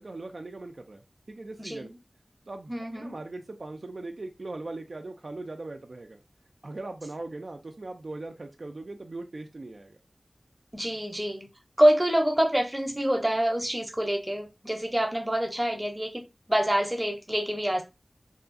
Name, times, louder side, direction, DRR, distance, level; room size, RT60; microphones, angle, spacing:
voice 1, 0.0-1.9 2.5-6.2 6.6-10.0, right 2 dB, 65° right, 0.3 m, -40 dB
voice 2, 1.6-1.9 2.7-3.1 10.7-11.5 11.8-16.2 16.5-17.8, right 1 dB, 15° right, 0.7 m, -26 dB
2.7 x 2.3 x 2.5 m
wide cardioid pair, 60°, 0 cm